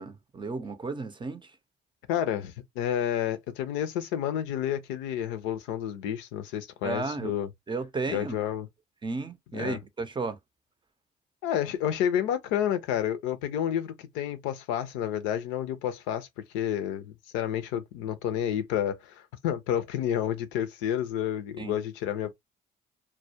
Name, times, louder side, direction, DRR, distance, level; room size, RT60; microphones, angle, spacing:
voice 1, 0.0-1.5 6.8-7.3 7.7-8.4 9.0-10.4 21.6-21.7, right 3 dB, 25° right, 0.5 m, -33 dB
voice 2, 2.1-7.5 8.1-8.7 9.5-9.8 11.4-16.3 16.5-22.3, left 10 dB, 85° left, 0.5 m, -30 dB
2.2 x 2.1 x 2.6 m
hypercardioid pair, 60°, 19 cm